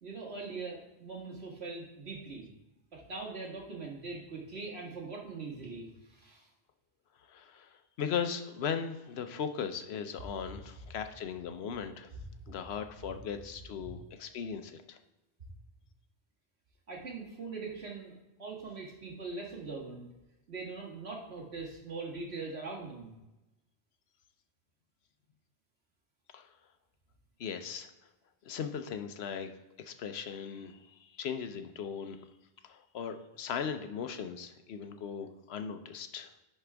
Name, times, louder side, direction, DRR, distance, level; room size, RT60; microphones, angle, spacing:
voice 1, 0.0-2.5 2.9-6.5 12.1-12.2 13.8-13.9 16.9-18.1 18.4-20.1 20.5-23.1, right 3 dB, 70° right, -3 dB, 2.1 m, -42 dB
voice 2, 7.3-12.1 12.5-15.0 26.3-26.5 27.4-27.9 28.4-29.5 29.8-32.2 32.6-36.3, left 7 dB, 75° left, 8 dB, 1.0 m, -38 dB
11.0 x 4.4 x 3.4 m, 1.0 s
omnidirectional pair, 1.1 m